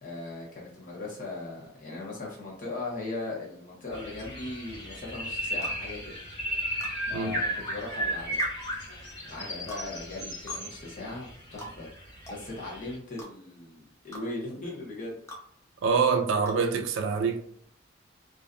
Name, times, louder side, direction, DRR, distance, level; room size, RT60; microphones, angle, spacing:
voice 1, 0.0-6.1 7.1-8.4 9.2-11.9 12.3-15.2, left 2 dB, 45° left, 0.8 m, -38 dB
sound 1, 3.9-12.9, equal, 60° left, 1.2 m, -35 dB
sound 2, 5.6-5.8 6.8-7.0 8.4-8.6 9.7-9.9 10.5-10.6 11.6-11.7 12.3-12.4 13.2-13.3 14.1-14.3 15.3-15.4 16.5-16.6, equal, 15° left, 0.4 m, -42 dB
voice 2, 15.8-17.4, right 5 dB, 80° right, 0.3 m, -25 dB
2.5 x 2.2 x 2.4 m
head